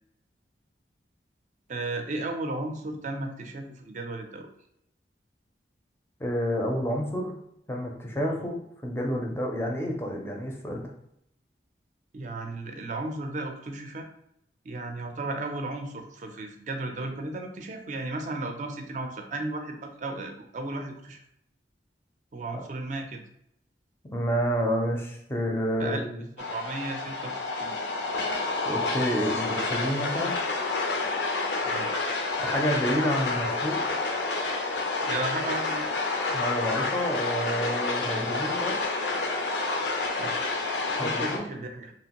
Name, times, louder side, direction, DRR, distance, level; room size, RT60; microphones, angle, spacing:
voice 1, 1.7-4.5 8.2-8.5 12.1-14.1 14.6-21.2 22.3-23.2 25.8-26.0 26.5-27.8 31.6-31.9 35.0-36.0 40.1-40.4 41.0-41.9, right 2 dB, 45° right, 4 dB, 0.4 m, -35 dB
voice 2, 6.2-7.4 7.7-8.6 8.8-10.9 22.5-22.6 24.1-26.2 28.6-30.3 32.4-33.8 36.3-38.8 41.0-41.5, equal, 15° left, 0 dB, 0.4 m, -29 dB
sound 1, 26.4-41.4, left 3 dB, 80° left, 0.5 m, -29 dB
2.9 x 2.5 x 2.9 m, 0.76 s
head